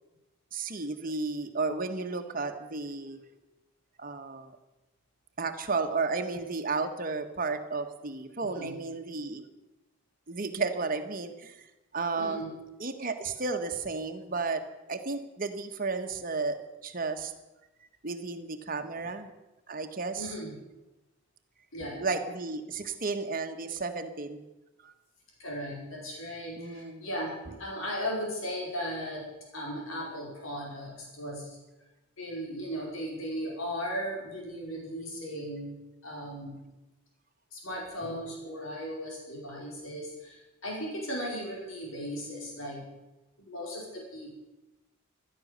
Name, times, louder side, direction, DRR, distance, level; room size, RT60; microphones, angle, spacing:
voice 1, 0.5-3.2 4.0-4.5 5.4-9.4 10.3-11.5 11.9-12.4 12.8-14.6 14.9-16.6 16.8-17.3 18.0-19.3 19.7-20.3 22.0-24.4 24.8-24.9 26.6-27.1, right 4 dB, 45° right, 6 dB, 1.5 m, -33 dB
voice 2, 8.4-8.7 12.1-12.5 18.9-19.1 20.1-20.6 21.7-22.1 25.4-29.3 29.5-31.6 32.2-35.7 36.0-36.6 37.5-42.9 43.4-44.4, equal, 90° left, -2 dB, 5.1 m, -37 dB
15.5 x 13.0 x 6.8 m, 1.0 s
head